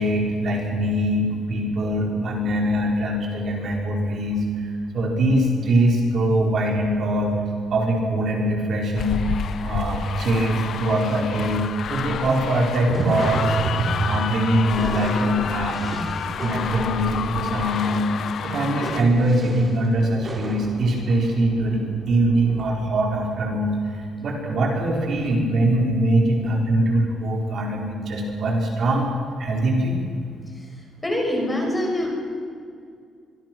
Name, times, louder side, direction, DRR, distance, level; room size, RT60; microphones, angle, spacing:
voice 1, 0.0-7.4 7.7-9.2 9.6-16.0 16.4-18.1 18.4-29.1 29.4-30.0, right 1 dB, 50° right, 0 dB, 4.5 m, -22 dB
sound 1, 9.0-19.0, left 8 dB, 55° left, 0.8 m, -30 dB
sound 2, 12.9-22.7, right 2 dB, 20° right, 4.3 m, -37 dB
voice 2, 31.0-32.1, left 1 dB, 15° left, 1 dB, 5.6 m, -24 dB
24.5 x 24.0 x 6.2 m, 2.2 s
cardioid pair, 150°, 0 cm